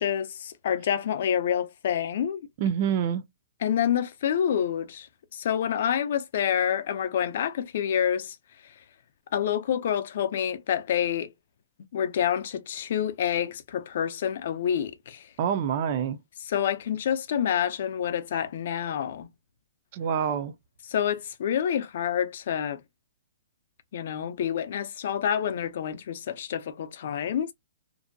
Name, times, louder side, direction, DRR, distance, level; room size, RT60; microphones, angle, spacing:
voice 1, 0.0-2.4 3.6-5.1 5.3-8.4 9.3-11.3 11.9-15.2 16.5-19.3 20.9-22.8 23.9-27.5, left 9 dB, 55° left, 0.5 m, -27 dB
voice 2, 2.6-3.3 15.4-16.2 19.9-20.5, right 8 dB, 35° right, 0.4 m, -26 dB
2.6 x 2.1 x 2.6 m
hypercardioid pair, 160°, 0 cm